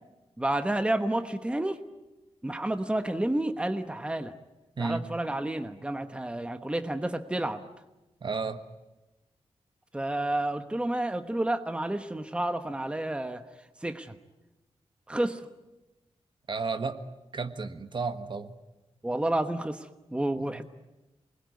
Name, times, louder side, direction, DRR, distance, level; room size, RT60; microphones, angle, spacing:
voice 1, 0.4-1.8 2.4-4.4 4.8-7.7 9.9-13.4 13.8-14.2 15.1-15.5 19.0-20.6, right 1 dB, 10° right, 8 dB, 1.1 m, -30 dB
voice 2, 8.2-8.6 16.5-17.0 17.3-18.5 20.4-20.5, right 4 dB, 50° right, 9 dB, 1.4 m, -32 dB
28.0 x 21.0 x 9.5 m, 1.0 s
wide cardioid pair, 140°, 11 cm